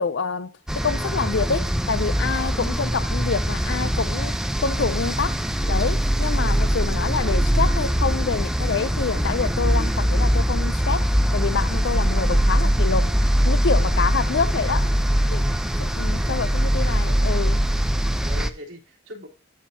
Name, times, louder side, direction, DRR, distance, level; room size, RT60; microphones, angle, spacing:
voice 1, 0.0-4.3 4.6-5.4 5.7-11.1 11.3-13.2 13.4-15.0 15.3-17.6, left 5 dB, 65° left, 0.5 m, -27 dB
sound 1, 0.7-18.5, equal, 5° right, 0.4 m, -22 dB
voice 2, 17.9-19.3, left 1 dB, 70° right, 3.4 m, -41 dB
13.0 x 4.4 x 2.8 m
head